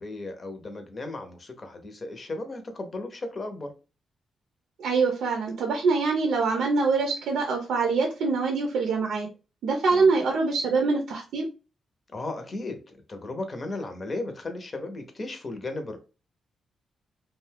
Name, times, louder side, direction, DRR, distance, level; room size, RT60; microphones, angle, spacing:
voice 1, 0.0-3.7 9.9-10.1 12.1-16.0, left 2 dB, 35° left, 0.7 m, -35 dB
voice 2, 4.8-9.3 9.6-11.5, right 4 dB, 80° right, 0.6 m, -24 dB
2.5 x 2.2 x 3.2 m
cardioid pair, 110°, 0 cm